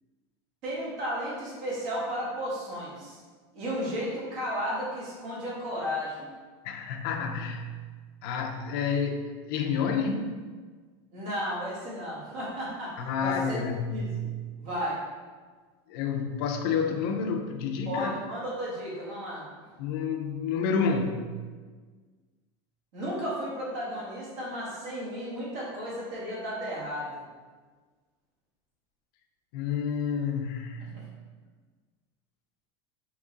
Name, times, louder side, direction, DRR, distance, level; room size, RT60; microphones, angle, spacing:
voice 1, 0.6-3.2 3.5-6.3 11.1-13.6 13.9-14.3 14.6-15.0 17.9-19.4 22.9-27.2 30.9-31.0, equal, 50° right, -6 dB, 1.3 m, -34 dB
voice 2, 6.6-7.7 8.2-10.4 13.0-14.2 15.9-18.1 19.8-21.2 29.5-30.9, left 6 dB, 60° left, 3 dB, 0.5 m, -29 dB
3.9 x 2.9 x 3.6 m, 1.5 s
supercardioid pair, 170°, 13 cm